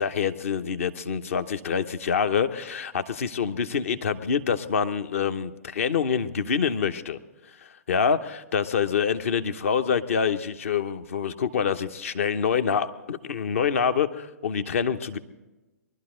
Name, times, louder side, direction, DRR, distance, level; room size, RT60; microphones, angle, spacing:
voice 1, 0.0-7.2 7.6-15.2, left 6 dB, 55° left, 11 dB, 0.9 m, -26 dB
23.0 x 12.0 x 3.8 m, 1.1 s
figure-of-eight pair, 120°, 9 cm